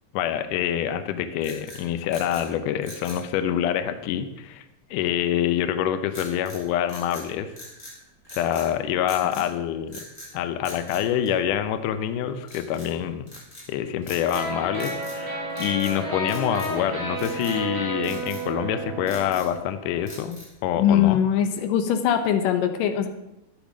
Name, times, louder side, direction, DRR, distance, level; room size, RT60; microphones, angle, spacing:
voice 1, 0.1-4.6 4.9-7.5 8.3-10.0 10.3-13.3 13.7-21.2, left 10 dB, 85° left, 9 dB, 1.8 m, -26 dB
sound 1, 1.4-2.5 2.8-3.2 6.1-6.6 6.9-8.0 8.2-8.7 9.1-9.5 9.9-10.3 10.6-11.8 12.4-12.9 13.3-13.7 14.0-14.5 14.7-15.2 15.5-16.0 16.3-16.8 17.2-17.6 18.0-18.4 18.9-19.6 20.1-20.6, left 1 dB, 10° left, 4.4 m, -43 dB
sound 2, 14.3-20.0, right 2 dB, 60° right, 6.1 m, -32 dB
voice 2, 20.8-23.1, left 9 dB, 70° left, 7 dB, 2.3 m, -21 dB
12.0 x 8.8 x 6.2 m, 0.91 s
omnidirectional pair, 4.7 m